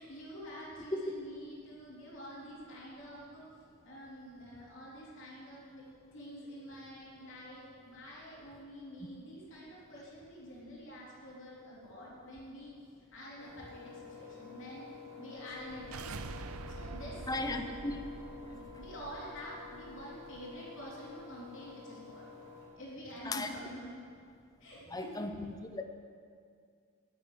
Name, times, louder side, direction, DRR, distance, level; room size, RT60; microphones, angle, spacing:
voice 1, 0.0-3.5 3.8-5.8 6.1-12.7 13.1-14.9 15.2-16.2 16.7-17.9 18.5-22.3 22.8-24.0 24.6-25.3, equal, 60° left, -6 dB, 3.4 m, -47 dB
Engine, 13.4-22.7, left 5 dB, 40° left, 3.9 m, -51 dB
sound 1, 15.5-20.6, right 3 dB, 80° right, 0.6 m, -46 dB
voice 2, 17.3-18.0 23.3-23.5 24.9-25.8, left 2 dB, 15° left, 6 dB, 0.7 m, -36 dB
9.9 x 8.3 x 9.3 m, 2.2 s
head